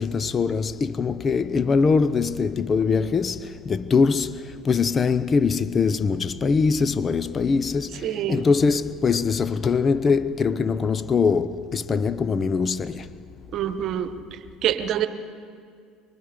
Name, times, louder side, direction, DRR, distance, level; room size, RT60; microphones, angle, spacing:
voice 1, 0.0-4.3 4.6-7.9 8.3-13.0, left 5 dB, 35° left, 0.8 m, -22 dB
voice 2, 8.0-8.4 13.5-14.1 14.6-15.1, right 11 dB, 55° right, 1.2 m, -25 dB
25.0 x 24.0 x 5.3 m
hypercardioid pair, 65°, 0 cm